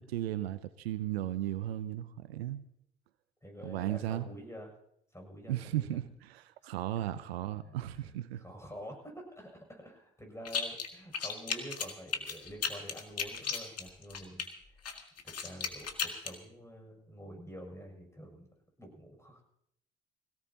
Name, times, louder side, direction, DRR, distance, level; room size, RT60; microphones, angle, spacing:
voice 1, 0.0-2.6 3.6-4.3 5.5-8.4, right 13 dB, 90° right, 0.6 m, -35 dB
voice 2, 3.4-4.7 5.1-5.9 6.6-6.7 7.6-8.1 8.4-14.5 15.2-18.5 18.8-19.4, equal, 10° left, 6.9 m, -48 dB
sound 1, 10.4-10.9 11.1-14.5 14.8-16.3, left 6 dB, 55° left, 2.0 m, -35 dB
22.0 x 17.0 x 2.9 m
hypercardioid pair, 45°, 30 cm